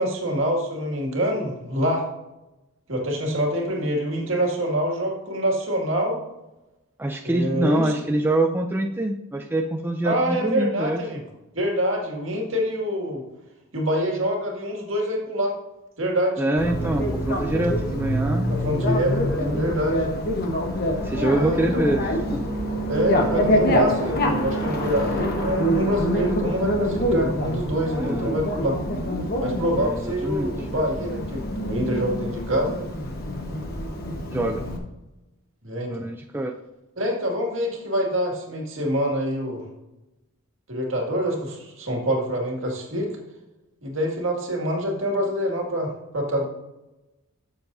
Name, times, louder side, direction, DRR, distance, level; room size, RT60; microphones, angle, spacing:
voice 1, 0.0-2.1 2.9-6.2 7.2-7.9 10.0-11.2 11.5-13.2 13.7-15.5 16.0-16.4 18.5-20.1 21.2-21.9 22.9-28.8 29.4-32.9 35.6-36.0 37.0-39.7 40.7-43.1 43.8-46.4, equal, 65° right, 0 dB, 2.2 m, -26 dB
voice 2, 7.0-11.0 16.4-18.5 19.4-19.7 21.0-22.5 25.2-25.3 28.0-28.4 29.8-30.5 34.3-34.6 35.9-36.5, right 1 dB, 10° right, 3 dB, 0.4 m, -25 dB
Bicycle, 16.6-34.8, equal, 45° left, 1.2 m, -25 dB
13.0 x 7.1 x 2.7 m, 0.99 s
head